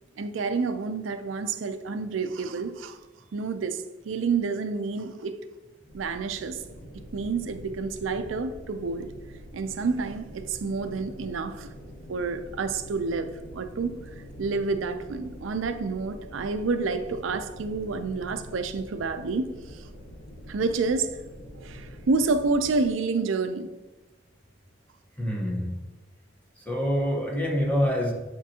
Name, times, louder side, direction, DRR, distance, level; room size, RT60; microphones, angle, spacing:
voice 1, 0.2-3.0 3.3-5.5 5.9-6.6 7.1-9.1 9.5-11.7 12.1-19.9 20.5-21.2 21.5-23.7, right 4 dB, 80° right, 0.5 m, -29 dB
sound 1, 5.9-22.9, equal, 85° left, 1.6 m, -45 dB
voice 2, 25.2-25.8 26.6-28.1, equal, 10° left, 1.1 m, -26 dB
8.5 x 4.4 x 2.8 m
head